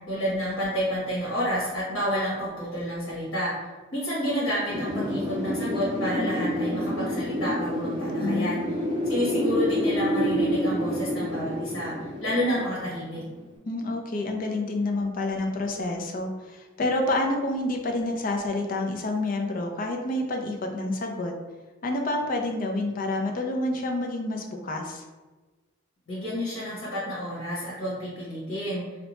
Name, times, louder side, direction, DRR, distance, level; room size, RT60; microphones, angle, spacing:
voice 1, 0.1-3.5 3.9-8.6 9.0-13.2 26.1-28.8, equal, 75° left, -8 dB, 1.3 m, -29 dB
Wind, 4.7-13.4, equal, 20° right, 0.7 m, -28 dB
voice 2, 8.2-8.6 13.6-21.3 21.8-25.0, left 2 dB, 40° left, 2 dB, 0.4 m, -28 dB
2.8 x 2.1 x 4.1 m, 1.2 s
head